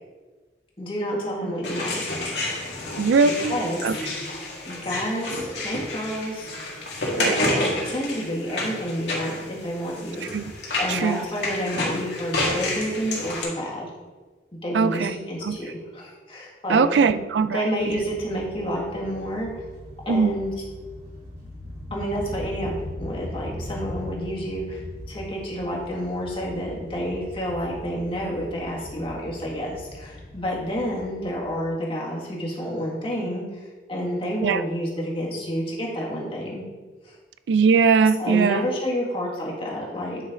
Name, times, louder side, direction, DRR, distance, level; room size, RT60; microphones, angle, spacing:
voice 1, 0.8-2.0 3.2-3.8 4.7-6.6 7.1-10.3 10.8-13.9 14.5-17.2 17.5-19.5 20.1-20.5 21.9-24.8 25.1-33.4 33.9-36.6 37.1-37.2 38.2-40.2, equal, 30° left, -3 dB, 1.9 m, -29 dB
sound 1, 1.6-13.4, left 2 dB, 75° left, 2.2 m, -29 dB
voice 2, 3.0-3.5 3.8-4.0 7.2-7.4 10.3-10.4 10.9-11.2 14.7-15.2 15.4-15.6 16.7-18.0 20.1-20.3 34.4-34.6 37.5-38.7, right 5 dB, 80° right, 13 dB, 0.4 m, -20 dB
sound 2, 17.8-31.6, left 1 dB, 60° right, 2.5 m, -39 dB
9.6 x 5.6 x 3.8 m, 1.3 s
head